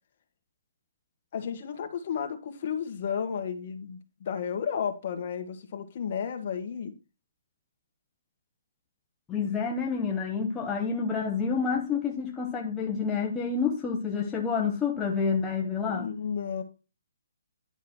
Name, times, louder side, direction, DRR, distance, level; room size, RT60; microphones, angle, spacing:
voice 1, 1.3-6.9 15.8-16.6, left 7 dB, 35° left, 1.7 m, -33 dB
voice 2, 9.3-16.1, left 5 dB, 10° left, 0.8 m, -28 dB
11.0 x 6.2 x 4.4 m
hypercardioid pair, 170°, 0 cm